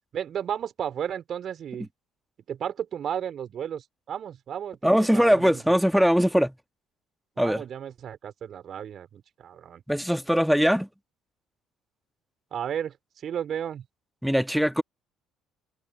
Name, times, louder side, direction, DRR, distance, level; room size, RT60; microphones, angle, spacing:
voice 1, 0.1-1.9 2.5-5.6 7.4-9.8 12.5-13.0 13.2-13.8, right 9 dB, 50° right, 5.4 m, -33 dB
voice 2, 4.8-6.6 7.4-7.6 9.9-10.9 14.2-14.8, equal, ahead, 2.0 m, -21 dB
hypercardioid pair, 55°, 0 cm